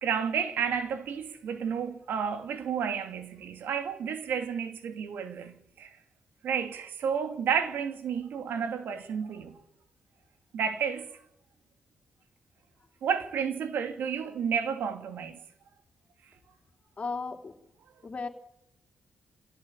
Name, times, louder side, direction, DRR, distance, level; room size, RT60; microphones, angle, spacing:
voice 1, 0.0-5.9 6.4-9.6 10.5-11.2 13.0-15.4, right 7 dB, 85° right, 2.7 m, -31 dB
voice 2, 17.0-17.5 18.0-18.3, left 4 dB, 35° left, 3.8 m, -35 dB
23.5 x 17.5 x 9.8 m
cardioid pair, 90°, 3 cm